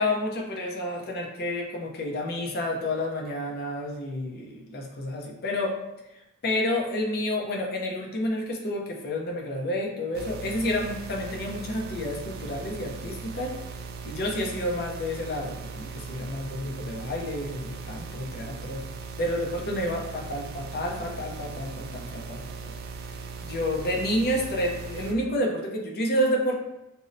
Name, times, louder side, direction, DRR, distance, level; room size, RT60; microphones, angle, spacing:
voice 1, 0.0-5.7 6.4-13.5 14.0-18.8 19.2-22.7 23.4-26.5, left 1 dB, 45° left, 0 dB, 0.5 m, -30 dB
sound 1, 10.1-25.1, right 4 dB, 45° right, 0.3 m, -39 dB
5.3 x 2.0 x 2.5 m, 0.91 s
head